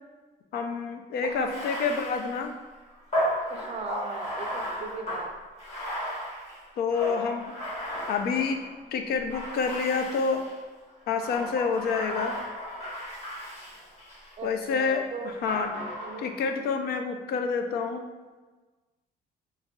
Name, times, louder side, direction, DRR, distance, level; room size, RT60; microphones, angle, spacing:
voice 1, 0.5-2.5 6.8-7.5 8.1-8.6 8.9-10.4 11.1-12.4 14.4-15.7 16.2-18.1, left 5 dB, 70° left, 6 dB, 0.4 m, -28 dB
voice 2, 1.2-1.6 3.5-5.3 14.4-15.3 16.0-16.3, right 5 dB, 40° right, 4 dB, 0.4 m, -38 dB
Bathtub (filling or washing), 1.4-8.7 9.3-10.6 11.1-14.3 15.5-16.5, equal, 40° left, 1.3 m, -35 dB
3.0 x 2.3 x 3.6 m, 1.3 s
cardioid pair, 110°, 17 cm